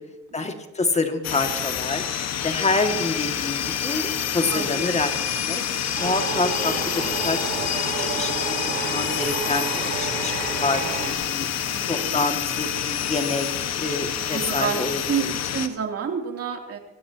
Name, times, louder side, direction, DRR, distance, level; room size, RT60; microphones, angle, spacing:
voice 1, 0.3-2.0 2.4-5.1 5.4-5.6 6.0-8.5 8.8-10.3 10.6-11.5 11.9-13.5 13.8-15.3, left 3 dB, 20° left, 5 dB, 2.1 m, -27 dB
sound 1, 1.2-15.7, left 9 dB, 50° left, 1.5 m, -27 dB
voice 2, 4.5-4.8 11.7-12.2 14.3-14.8 15.1-16.8, right 7 dB, 45° right, 2 dB, 3.0 m, -29 dB
sound 2, 6.0-11.1, right 6 dB, 70° right, 5.2 m, -31 dB
23.5 x 16.5 x 2.9 m, 1.1 s
cardioid pair, 105°, 33 cm